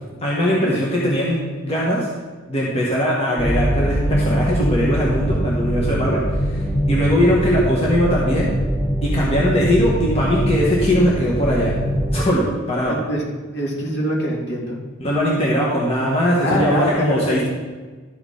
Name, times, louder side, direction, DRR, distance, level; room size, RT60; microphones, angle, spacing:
voice 1, 0.2-2.1 2.5-6.6 6.9-8.5 9.0-11.7 12.1-12.9 15.0-17.4, equal, 30° left, -5 dB, 1.6 m, -20 dB
sound 1, 3.4-12.2, equal, 10° left, 1.2 m, -22 dB
voice 2, 12.9-13.2 13.5-14.8 16.4-17.4, equal, 55° left, -3 dB, 2.4 m, -24 dB
12.5 x 5.0 x 5.0 m, 1.4 s
head